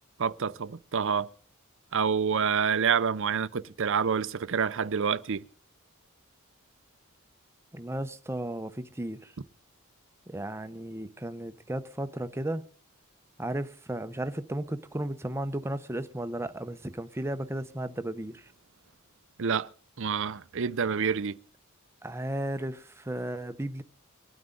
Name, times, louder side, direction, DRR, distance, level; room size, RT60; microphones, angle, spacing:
voice 1, 0.2-1.3 1.9-5.4 19.4-19.7 20.0-21.3, right 6 dB, 60° right, 0.6 m, -27 dB
voice 2, 7.7-9.3 10.3-12.6 13.4-18.5 22.0-23.8, right 1 dB, 10° right, 0.8 m, -34 dB
24.0 x 9.4 x 3.9 m
head